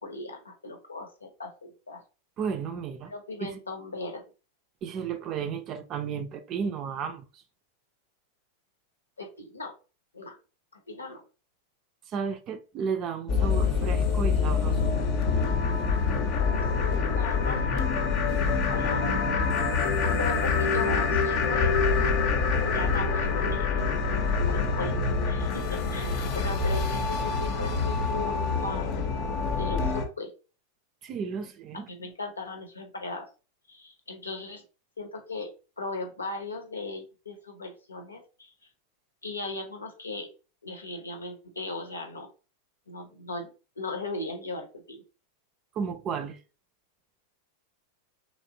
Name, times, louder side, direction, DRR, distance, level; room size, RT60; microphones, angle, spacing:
voice 1, 0.0-2.0 3.1-4.2 9.2-9.7 10.1-10.3 10.7-11.2 16.8-17.9 18.5-19.1 19.8-22.1 22.7-29.0 29.5-30.3 31.7-33.3 33.7-34.6 35.0-38.5 39.2-40.3 40.6-42.3 42.9-45.0, left 3 dB, 75° left, 0.8 m, -38 dB
voice 2, 2.4-3.1 3.4-3.5 4.8-7.4 12.1-14.9 31.0-31.9 45.8-46.4, right 6 dB, 35° right, 0.5 m, -33 dB
sound 1, 13.3-30.1, left 5 dB, 40° left, 0.7 m, -26 dB
3.2 x 3.0 x 2.7 m
figure-of-eight pair, 90°, 0 cm